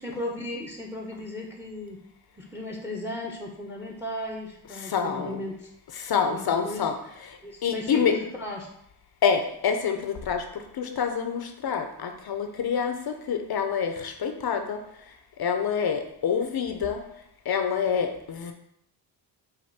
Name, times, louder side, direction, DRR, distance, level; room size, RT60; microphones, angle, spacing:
voice 1, 0.0-2.0 2.4-5.7 6.3-6.9 7.4-8.7, left 1 dB, 5° right, 1 dB, 0.9 m, -36 dB
voice 2, 4.8-5.4 6.0-7.0 7.6-8.2 9.2-10.4 10.8-14.8 15.4-17.0 17.5-18.5, left 6 dB, 55° left, 6 dB, 0.7 m, -27 dB
5.0 x 2.6 x 4.1 m, 0.75 s
cardioid pair, 60°, 45 cm